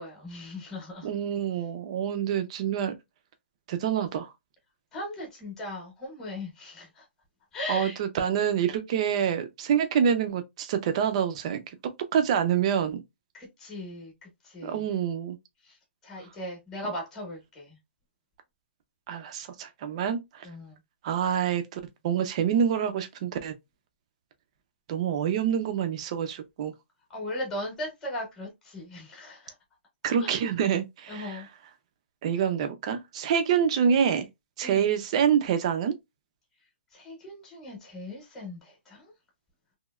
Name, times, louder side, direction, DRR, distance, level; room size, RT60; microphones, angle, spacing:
voice 1, 0.0-1.1 4.9-7.0 7.5-8.0 13.3-14.8 15.6-15.8 16.0-17.8 20.4-20.7 27.1-29.5 30.2-30.3 31.1-31.5 34.6-34.8 36.9-39.1, left 1 dB, 5° left, 0.9 m, -38 dB
voice 2, 1.0-2.9 3.7-4.3 7.7-11.6 12.1-13.0 14.6-15.4 19.1-20.5 21.0-23.5 24.9-26.7 30.0-31.4 32.2-34.3 34.6-35.9, right 8 dB, 30° right, 0.4 m, -26 dB
3.0 x 2.7 x 2.3 m
hypercardioid pair, 170°, 7 cm